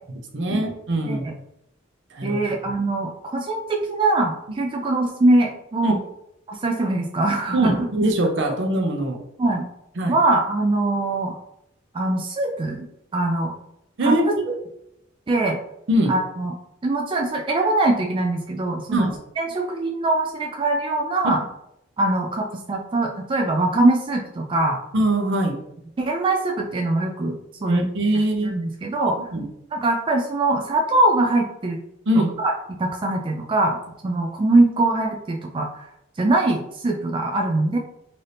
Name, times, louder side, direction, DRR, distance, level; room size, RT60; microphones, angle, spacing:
voice 1, 0.3-1.3 2.1-2.4 5.8-6.0 7.5-9.2 10.0-10.2 14.0-14.5 15.9-16.1 18.9-19.1 21.2-21.4 24.9-25.5 27.7-28.5 29.3-29.5 32.1-32.3, right 1 dB, 65° right, 3 dB, 0.7 m, -22 dB
voice 2, 2.2-6.0 6.5-7.9 9.4-9.7 10.1-11.3 11.9-12.9 13.1-13.5 14.0-14.2 15.3-15.6 16.1-16.5 16.8-19.1 19.4-21.4 22.0-24.8 26.0-27.8 28.4-29.2 29.7-31.8 32.4-32.5 32.8-33.8 34.0-35.9 36.2-37.8, right 2 dB, 25° right, 1 dB, 0.3 m, -22 dB
4.0 x 2.7 x 3.3 m, 0.81 s
head